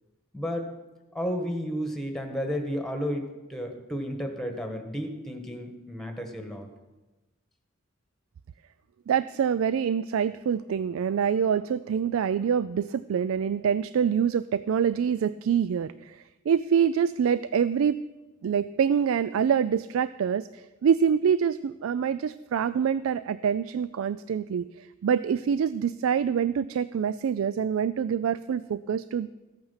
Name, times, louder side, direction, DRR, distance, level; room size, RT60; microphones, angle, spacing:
voice 1, 0.3-0.7 1.1-6.7, equal, ahead, 3 dB, 1.3 m, -32 dB
voice 2, 9.1-18.0 18.4-29.3, right 7 dB, 85° right, 15 dB, 0.3 m, -26 dB
14.5 x 8.8 x 5.7 m, 1.1 s
head